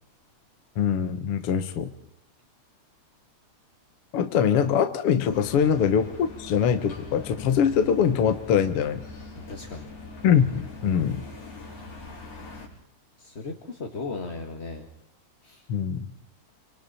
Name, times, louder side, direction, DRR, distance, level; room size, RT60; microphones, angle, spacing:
voice 1, 0.8-1.9 4.1-9.0 10.2-11.2 15.7-16.1, left 8 dB, 60° left, 9 dB, 1.9 m, -23 dB
sound 1, 5.3-12.7, left 2 dB, 75° left, 5.9 m, -42 dB
voice 2, 9.5-9.9 13.2-14.9 15.4-15.6, left 3 dB, 25° left, 3 dB, 1.5 m, -36 dB
29.0 x 25.0 x 4.3 m, 0.75 s
omnidirectional pair, 3.5 m